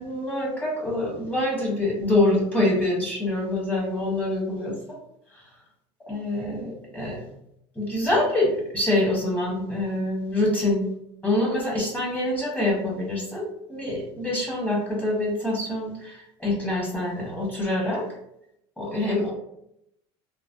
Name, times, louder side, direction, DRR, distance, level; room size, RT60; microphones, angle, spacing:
voice 1, 0.0-5.0 5.3-5.5 6.1-7.2 7.7-10.9 11.2-18.0 18.8-19.3, left 1 dB, 10° left, -4 dB, 1.4 m, -25 dB
3.2 x 2.0 x 2.6 m, 0.79 s
supercardioid pair, 110°, 13 cm